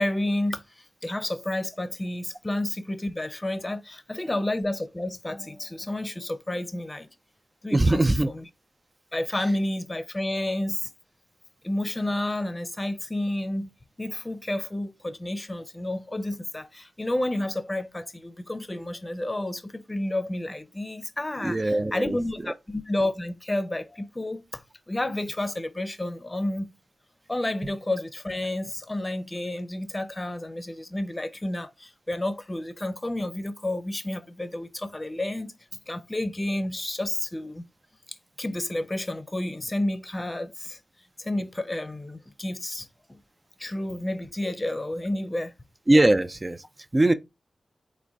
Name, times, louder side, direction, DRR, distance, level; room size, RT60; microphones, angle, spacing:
voice 1, 0.0-7.1 7.6-8.4 9.1-10.9 11.6-13.7 14.0-26.7 27.3-35.5 35.9-37.6 38.4-40.8 41.2-43.2 43.6-45.5, left 1 dB, 25° left, 0.6 m, -30 dB
voice 2, 7.7-8.3 21.4-22.2 45.9-46.6 46.9-47.1, right 1 dB, 30° right, 0.4 m, -21 dB
3.7 x 2.2 x 3.4 m
cardioid pair, 40°, 0 cm